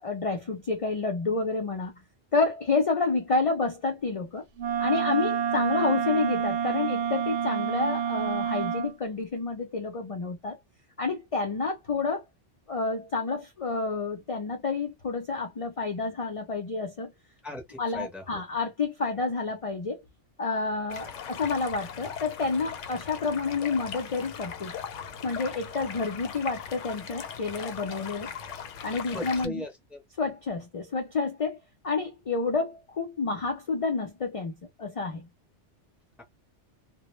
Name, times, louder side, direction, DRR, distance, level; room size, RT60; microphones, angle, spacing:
voice 1, 0.0-2.0 2.3-4.4 4.8-10.6 11.0-12.2 12.7-17.1 17.8-20.0 20.4-24.7 25.2-28.3 28.8-29.6 30.2-31.6 31.8-34.5 34.8-35.3, left 4 dB, 50° left, 0.4 m, -29 dB
Wind instrument woodwind instrument, 4.6-8.9, right 8 dB, 70° right, 0.8 m, -28 dB
voice 2, 17.4-18.4 29.1-30.0, left 1 dB, ahead, 0.5 m, -38 dB
Stream, 20.9-29.4, left 7 dB, 85° left, 0.9 m, -39 dB
2.1 x 2.1 x 2.9 m
omnidirectional pair, 1.2 m